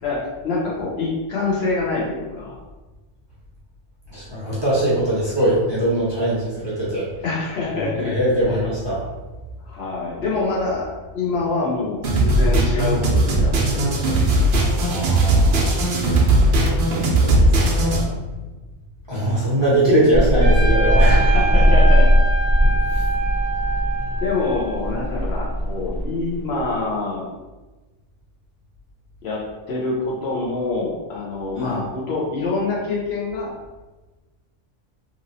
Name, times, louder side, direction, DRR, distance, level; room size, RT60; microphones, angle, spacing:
voice 1, 0.0-2.6 7.2-8.1 8.5-8.6 9.6-14.2 21.0-22.1 24.2-27.2 29.2-33.5, left 3 dB, 65° left, -4 dB, 0.9 m, -26 dB
voice 2, 4.1-7.1 7.8-9.0 14.5-15.8 17.2-18.0 19.1-21.1 22.9-23.0 31.6-31.7, right 1 dB, 25° right, -9 dB, 0.7 m, -21 dB
sound 1, 12.0-18.0, right 1 dB, 60° right, 0.7 m, -18 dB
sound 2, 20.1-26.8, equal, 35° left, 0.8 m, -18 dB
Trumpet, 20.4-25.1, right 4 dB, 80° right, 0.9 m, -26 dB
2.9 x 2.7 x 2.6 m, 1.2 s
omnidirectional pair, 1.2 m